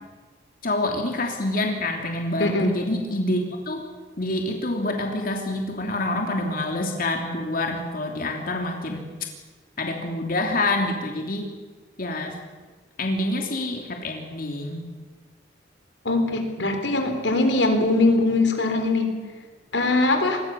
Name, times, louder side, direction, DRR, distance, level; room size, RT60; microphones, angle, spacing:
voice 1, 0.6-3.8 4.2-9.1 9.8-11.5 12.0-12.3 13.0-14.8, left 2 dB, 55° left, 2 dB, 3.0 m, -27 dB
voice 2, 2.4-2.7 16.1-19.1 19.7-20.4, left 2 dB, 85° left, 6 dB, 3.9 m, -21 dB
26.5 x 21.5 x 6.9 m, 1.4 s
head